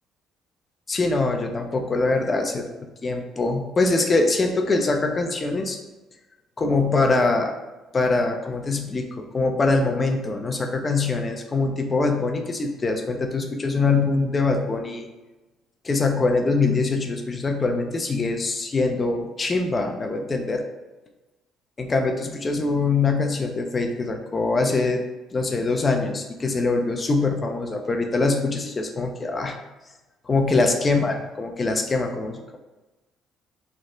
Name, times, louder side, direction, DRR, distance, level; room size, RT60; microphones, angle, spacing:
voice 1, 0.9-2.6 3.0-5.8 6.6-7.5 7.9-15.1 15.8-20.6 21.8-25.0 25.3-29.6 30.2-32.6, left 3 dB, 35° left, 3 dB, 0.6 m, -23 dB
3.3 x 2.0 x 3.7 m, 1.1 s
hypercardioid pair, 60°, 0 cm